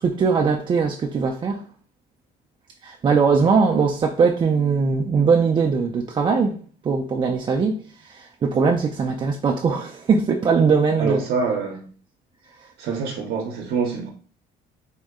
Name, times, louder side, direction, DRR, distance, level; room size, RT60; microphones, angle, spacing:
voice 1, 0.0-1.6 2.8-6.6 6.8-7.8 8.0-11.2, right 5 dB, 30° right, 0.4 m, -20 dB
voice 2, 11.0-11.9 12.8-14.1, right 5 dB, 70° right, 0.7 m, -26 dB
3.6 x 2.1 x 3.5 m
cardioid pair, 110°, 17 cm